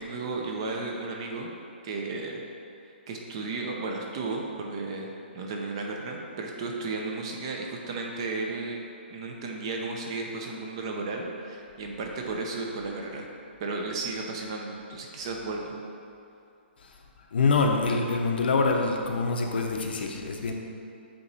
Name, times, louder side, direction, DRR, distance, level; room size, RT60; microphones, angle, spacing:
voice 1, 0.0-1.5 1.8-2.4 3.1-8.8 9.1-13.3 13.6-15.8, right 3 dB, 25° right, 1 dB, 0.5 m, -34 dB
voice 2, 17.3-20.5, left 3 dB, 55° left, 2 dB, 0.6 m, -25 dB
8.4 x 2.9 x 4.0 m, 2.5 s
hypercardioid pair, 175°, 6 cm